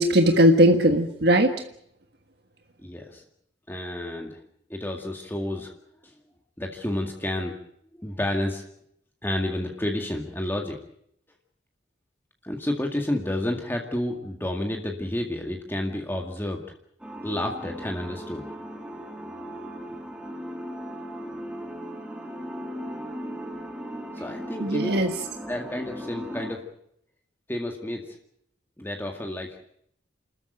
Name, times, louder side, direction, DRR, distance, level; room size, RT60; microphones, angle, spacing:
voice 1, 0.0-1.5 24.6-25.1, equal, 60° right, 5 dB, 1.6 m, -19 dB
voice 2, 2.8-3.2 3.7-4.4 4.7-5.7 6.6-7.6 8.0-8.6 9.2-10.8 12.4-16.6 17.2-18.4 24.1-25.0 25.5-26.6 27.5-28.2 28.8-29.6, left 1 dB, 10° left, 2 dB, 2.0 m, -30 dB
sound 1, 17.0-26.5, equal, 5° right, 2.7 m, -37 dB
29.5 x 13.5 x 9.1 m, 0.71 s
head